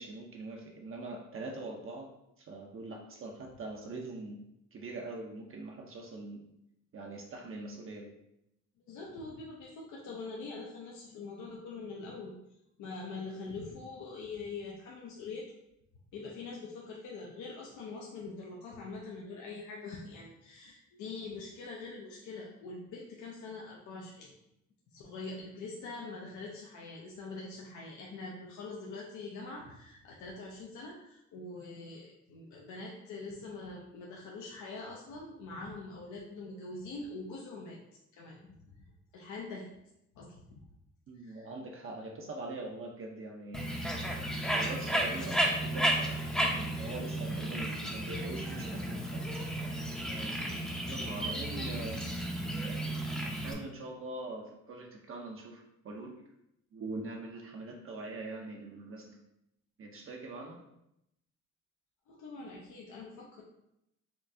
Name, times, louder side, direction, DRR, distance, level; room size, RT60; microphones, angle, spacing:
voice 1, 0.0-4.4 4.7-6.5 6.9-8.1 41.1-43.9 44.5-49.2 50.1-50.4 50.9-52.1 53.2-56.2 56.7-59.2 59.8-60.6, right 2 dB, 45° right, 1 dB, 0.6 m, -43 dB
voice 2, 8.9-12.4 12.8-15.5 16.1-24.4 24.9-37.8 38.2-38.9 39.1-39.7 40.2-40.6 41.2-41.5 51.5-51.8 62.1-63.4, left 3 dB, 70° left, -3 dB, 0.7 m, -44 dB
Bird, 43.5-53.5, right 1 dB, ahead, 0.6 m, -33 dB
4.4 x 2.3 x 2.6 m, 0.81 s
cardioid pair, 90°, 30 cm